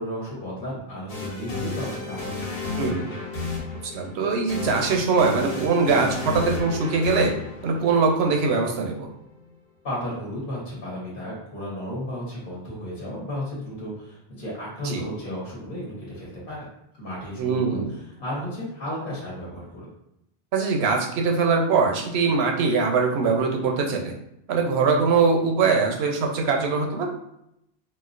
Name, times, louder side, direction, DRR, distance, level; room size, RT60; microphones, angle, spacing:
voice 1, 0.0-3.1 9.8-16.7 17.0-19.9, equal, 60° left, -6 dB, 1.2 m, -34 dB
sound 1, 1.1-9.0, left 3 dB, 80° left, 1.1 m, -32 dB
voice 2, 2.8-3.2 3.8-7.3 7.6-9.1 14.8-15.0 17.4-17.9 20.5-24.2 24.5-27.1, right 4 dB, 85° right, 2 dB, 0.9 m, -22 dB
4.2 x 2.0 x 2.4 m, 0.80 s
omnidirectional pair, 1.1 m